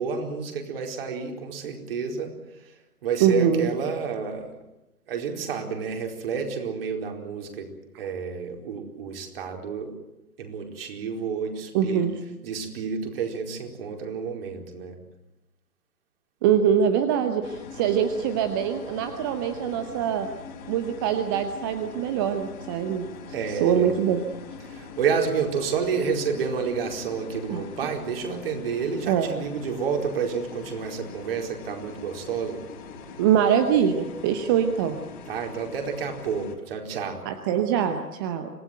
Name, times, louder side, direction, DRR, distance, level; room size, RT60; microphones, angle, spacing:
voice 1, 0.0-2.3 2.6-2.7 3.0-4.5 5.1-7.7 7.9-9.9 10.4-12.0 12.4-15.0 23.3-23.9 24.6-32.6 35.3-37.2, right 6 dB, 40° right, 3 dB, 4.6 m, -30 dB
voice 2, 3.2-3.7 11.7-12.1 16.4-20.3 20.7-23.1 23.5-24.2 27.5-27.6 29.1-29.3 33.2-35.0 37.2-38.5, right 8 dB, 15° right, 8 dB, 0.9 m, -23 dB
sound 1, 17.4-36.6, left 5 dB, 30° left, 3.9 m, -43 dB
26.0 x 17.5 x 9.2 m, 0.94 s
figure-of-eight pair, 130°, 44 cm